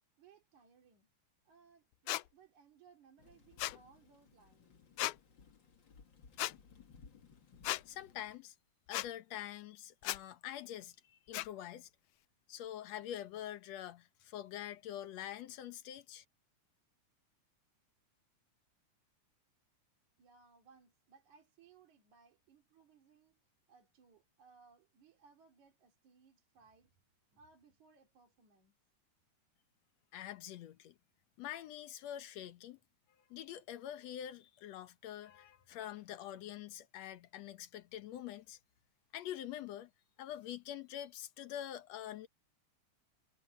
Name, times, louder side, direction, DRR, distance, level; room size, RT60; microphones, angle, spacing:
voice 1, 0.2-1.1 1.5-4.7 20.2-23.4 23.7-27.0 27.3-28.8, right 6 dB, 70° right, 4.1 m, -64 dB
sound 1, 2.1-2.2 3.6-3.8 5.0-5.2 6.4-6.5 7.6-7.8 8.9-9.1 10.0-10.2 11.3-11.5, left 18 dB, 85° left, 2.0 m, -36 dB
Thunder / Rain, 3.2-8.4, left 5 dB, 40° left, 2.4 m, -61 dB
voice 2, 7.9-8.6 8.9-11.9 12.5-16.3 30.1-31.0 31.4-32.8 33.3-38.6 39.1-39.9 40.2-42.3, left 11 dB, 70° left, 2.0 m, -45 dB
omnidirectional pair, 3.5 m